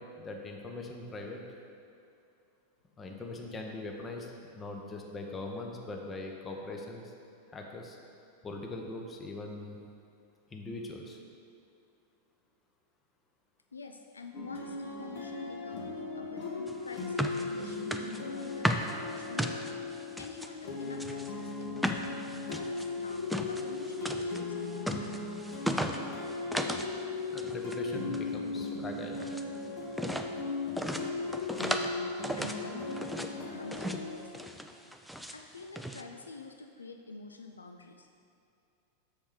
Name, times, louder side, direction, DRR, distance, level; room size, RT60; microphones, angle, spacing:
voice 1, 0.0-1.4 3.0-7.1 7.5-8.0 8.4-9.8 10.5-11.2 27.3-29.3, left 2 dB, 20° left, 1 dB, 1.0 m, -41 dB
voice 2, 13.7-19.9 20.2-25.2 32.3-34.9 35.3-38.1, left 4 dB, 75° left, 5 dB, 0.4 m, -47 dB
sound 1, 14.3-34.2, left 3 dB, 50° left, 1.4 m, -37 dB
sound 2, 16.7-20.5 20.9-26.9 27.2-27.8 28.1-29.5 29.9-30.3 30.8-31.9 32.2-33.3 33.7-34.1 34.3-35.4 35.8-36.0, equal, ahead, 0.4 m, -36 dB
6.8 x 6.8 x 4.9 m, 2.6 s
figure-of-eight pair, 90°, 0 cm